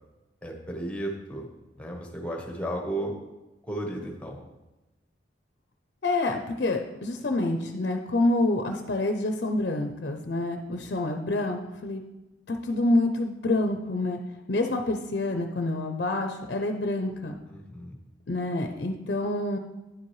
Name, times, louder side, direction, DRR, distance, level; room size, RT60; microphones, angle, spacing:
voice 1, 0.4-1.5 1.8-3.2 3.6-4.4 17.5-18.0, right 1 dB, 5° left, 1 dB, 1.0 m, -34 dB
voice 2, 6.0-12.0 12.5-14.2 14.5-17.4 18.3-19.6, left 2 dB, 55° left, 4 dB, 0.5 m, -27 dB
9.8 x 7.3 x 3.1 m, 1.0 s
head